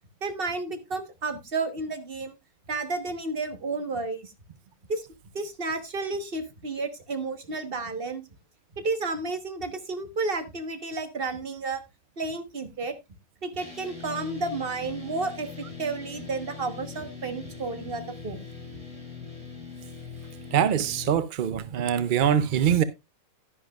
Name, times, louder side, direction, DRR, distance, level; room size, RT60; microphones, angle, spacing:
voice 1, 0.2-2.3 2.7-4.3 4.9-5.1 5.3-8.2 8.7-11.8 12.2-12.9 13.4-18.5, right 3 dB, 40° right, 1.5 m, -31 dB
sound 1, 13.6-21.2, left 5 dB, 25° right, 3.8 m, -41 dB
voice 2, 20.5-22.8, right 9 dB, 60° right, 0.5 m, -23 dB
11.0 x 10.5 x 2.4 m
omnidirectional pair, 1.5 m